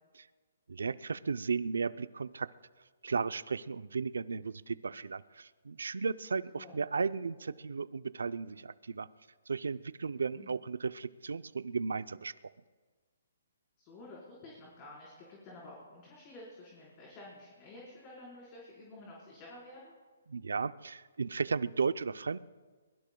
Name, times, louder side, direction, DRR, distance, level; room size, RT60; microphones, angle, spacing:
voice 1, 0.7-2.5 3.0-9.1 9.5-12.3 20.3-22.4, right 5 dB, 90° right, 14 dB, 0.5 m, -35 dB
voice 2, 13.8-19.9, left 2 dB, 25° left, -5 dB, 4.4 m, -51 dB
23.0 x 22.0 x 2.3 m, 1.4 s
hypercardioid pair, 160°, 0 cm